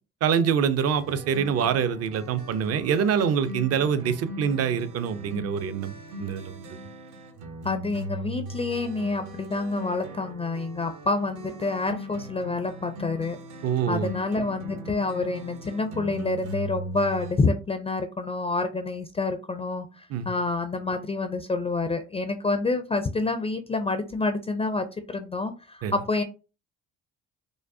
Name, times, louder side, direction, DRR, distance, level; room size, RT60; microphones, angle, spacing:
voice 1, 0.2-6.8 13.6-14.1 20.1-20.3 25.8-25.9, right 7 dB, 50° right, 0.5 m, -25 dB
sound 1, 1.0-17.3, right 1 dB, 65° right, 0.9 m, -39 dB
voice 2, 7.6-13.4 13.9-26.2, left 3 dB, 20° left, 0.4 m, -28 dB
4.9 x 2.0 x 2.6 m
supercardioid pair, 80°, 32 cm